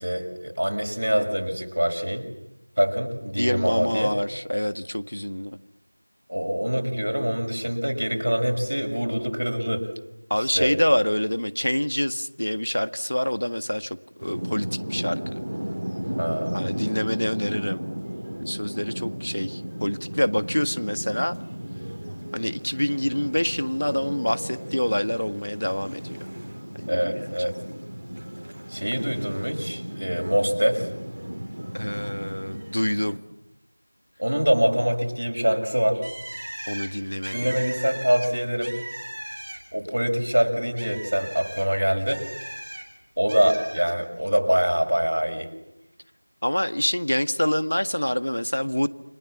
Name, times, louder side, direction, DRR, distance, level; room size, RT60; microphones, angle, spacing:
voice 1, 0.0-2.2 2.8-4.2 6.3-9.9 10.4-10.8 16.2-16.6 26.9-27.6 28.7-30.9 34.2-36.1 37.3-38.7 39.7-42.3 43.2-45.5, equal, 60° right, 4 dB, 6.1 m, -24 dB
voice 2, 3.4-5.6 10.3-15.2 16.5-17.8 18.4-21.4 22.3-26.2 26.8-27.2 27.6-27.8 31.7-33.2 36.7-37.6 46.4-48.9, equal, 60° left, 11 dB, 1.7 m, -26 dB
sound 1, 14.2-33.2, equal, 35° right, 3.3 m, -35 dB
Bird, 36.0-39.9 40.2-42.8 43.3-43.9, right 1 dB, 10° right, 3.4 m, -38 dB
29.5 x 26.0 x 7.4 m, 0.89 s
figure-of-eight pair, 180°, 0 cm